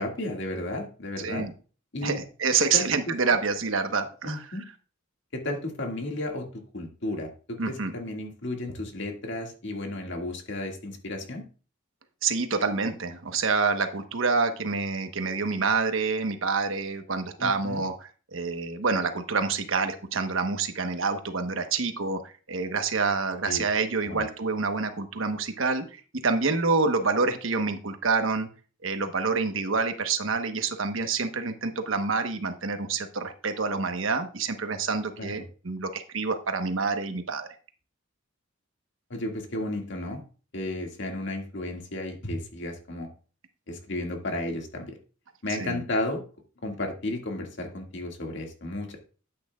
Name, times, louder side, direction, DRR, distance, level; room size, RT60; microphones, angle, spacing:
voice 1, 0.0-1.5 1.9-2.2 2.7-2.9 4.2-4.6 5.3-11.4 17.4-17.8 23.4-23.7 24.0-24.3 35.2-35.5 39.1-40.2 40.5-43.1 43.7-45.0 45.4-46.2 46.6-49.0, left 1 dB, 65° left, 2 dB, 2.0 m, -33 dB
voice 2, 1.2-1.5 2.0-4.6 7.6-7.9 12.2-22.2 22.5-28.5 28.8-37.5 45.6-45.8, right 4 dB, 75° right, 7 dB, 1.1 m, -27 dB
12.0 x 8.8 x 2.4 m, 0.37 s
head